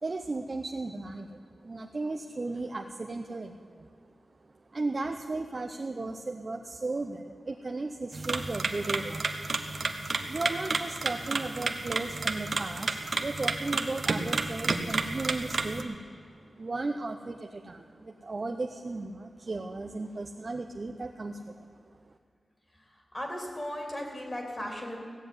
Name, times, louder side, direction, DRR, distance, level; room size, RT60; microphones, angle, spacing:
voice 1, 0.0-3.9 4.7-9.3 10.2-16.0 16.3-22.1, right 3 dB, 45° right, 4 dB, 0.7 m, -35 dB
sound 1, 8.1-15.8, right 3 dB, 60° right, 1.1 m, -31 dB
voice 2, 23.1-25.0, equal, 30° left, 1 dB, 3.4 m, -36 dB
16.5 x 7.7 x 9.4 m, 2.2 s
wide cardioid pair, 90°, 0 cm